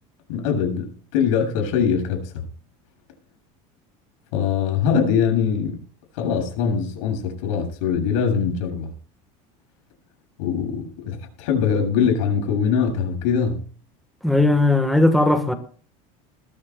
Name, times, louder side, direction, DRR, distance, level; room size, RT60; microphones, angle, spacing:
voice 1, 0.3-2.4 4.3-5.8 6.1-8.9 10.4-13.6, left 7 dB, 90° left, 7.4 m, -22 dB
voice 2, 14.2-15.5, left 2 dB, ahead, 1.3 m, -17 dB
21.0 x 15.0 x 2.3 m
cardioid pair, 165°, 16 cm